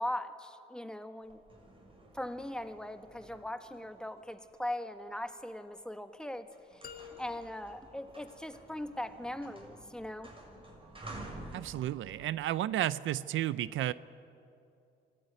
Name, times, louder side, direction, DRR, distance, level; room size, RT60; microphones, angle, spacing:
voice 1, 0.0-1.4 2.1-6.8 7.2-10.3, left 1 dB, 5° left, 8 dB, 1.5 m, -40 dB
sound 1, 1.2-5.4 6.0-6.2 6.5-12.3, right 2 dB, 25° right, 6.6 m, -51 dB
sound 2, 6.8-8.9, left 7 dB, 50° left, 1.7 m, -52 dB
voice 2, 11.5-13.9, right 13 dB, 75° right, 17 dB, 0.6 m, -32 dB
26.5 x 16.5 x 9.2 m, 2.6 s
cardioid pair, 90°, 20 cm